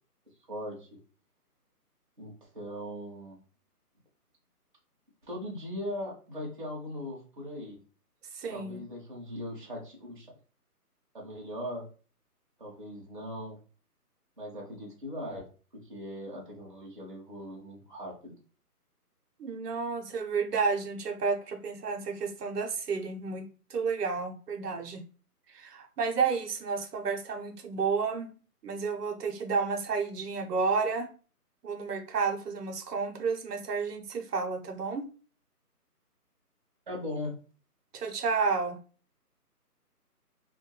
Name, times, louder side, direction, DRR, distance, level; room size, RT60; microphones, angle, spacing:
voice 1, 0.5-0.9 2.2-3.4 5.2-7.8 8.5-10.3 11.1-11.8 12.6-13.6 14.4-15.4 15.9-18.3 36.9-37.3, left 1 dB, 35° right, 0.5 m, -39 dB
voice 2, 8.3-8.8 19.4-25.0 25.5-28.3 28.6-31.1 31.6-35.1 37.9-38.8, right 5 dB, 80° right, 0.6 m, -31 dB
2.2 x 2.2 x 2.7 m
hypercardioid pair, 165°, 47 cm